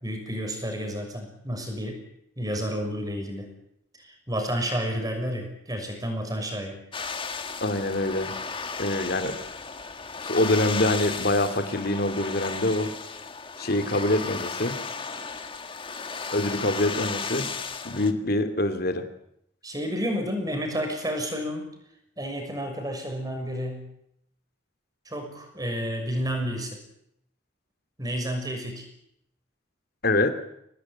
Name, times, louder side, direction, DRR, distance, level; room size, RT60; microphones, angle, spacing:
voice 1, 0.0-2.0 2.4-3.5 3.9-6.8 19.6-21.7 22.2-23.8 25.0-26.8 28.0-28.9, equal, 20° right, 4 dB, 6.4 m, -30 dB
sound 1, 6.9-18.1, left 5 dB, 25° left, 1.8 m, -35 dB
voice 2, 7.6-8.3 8.8-9.4 10.2-12.9 13.6-14.8 16.3-17.5 17.8-19.0 30.0-30.3, left 1 dB, 55° left, 9 dB, 2.6 m, -25 dB
24.0 x 19.0 x 9.9 m, 0.76 s
head